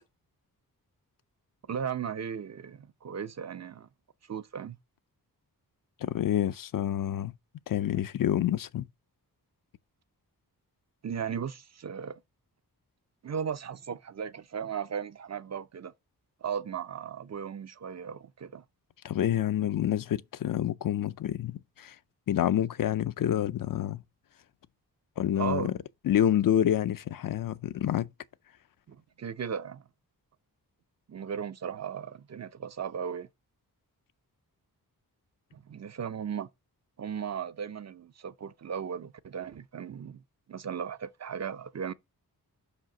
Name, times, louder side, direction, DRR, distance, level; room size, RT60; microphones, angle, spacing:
voice 1, 1.7-3.9 4.3-4.8 11.0-12.2 13.2-15.9 16.4-18.6 25.4-25.7 28.9-29.8 31.1-33.3 35.5-36.5 37.0-40.2 40.5-41.9, right 7 dB, 45° right, 0.5 m, -36 dB
voice 2, 6.0-7.3 7.7-8.9 19.0-22.0 22.3-24.0 25.2-25.8 26.0-28.1, left 11 dB, 60° left, 0.5 m, -28 dB
5.6 x 5.1 x 5.9 m
wide cardioid pair, 80°, 38 cm